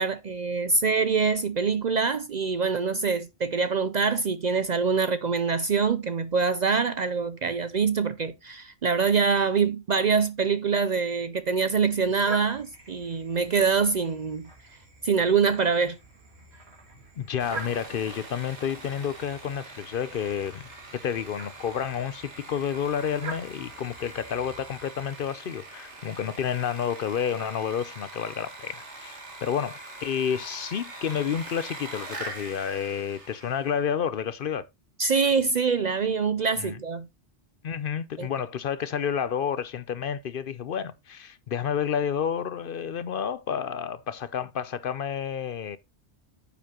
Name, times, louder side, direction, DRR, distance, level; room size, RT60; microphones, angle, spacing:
voice 1, 0.0-14.5 15.0-16.0 35.0-37.1 38.2-38.3, right 5 dB, 50° right, 0.5 m, -25 dB
sound 1, 12.0-25.3, right 3 dB, 65° right, 2.4 m, -46 dB
voice 2, 17.2-34.6 36.6-36.8 37.6-45.8, left 8 dB, 60° left, 0.7 m, -30 dB
Sawing, 17.4-33.8, right 2 dB, 85° right, 2.1 m, -43 dB
9.4 x 7.0 x 2.9 m
omnidirectional pair, 1.1 m